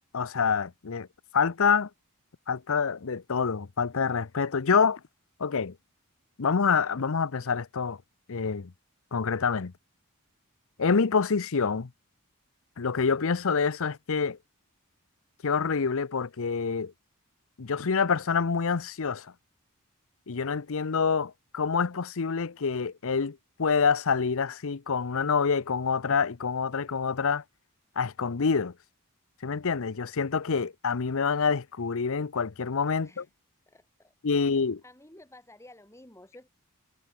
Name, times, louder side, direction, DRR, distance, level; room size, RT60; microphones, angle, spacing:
voice 1, 0.1-1.1 1.3-1.9 2.5-5.0 5.4-5.8 6.4-8.0 8.3-8.7 9.1-9.7 10.8-11.9 12.8-14.4 15.4-16.9 17.6-19.3 20.3-27.4 28.0-28.7 29.4-33.3 34.2-34.8, left 5 dB, 65° left, 0.7 m, -27 dB
voice 2, 33.7-34.1 34.8-36.5, left 1 dB, 15° left, 6.3 m, -52 dB
head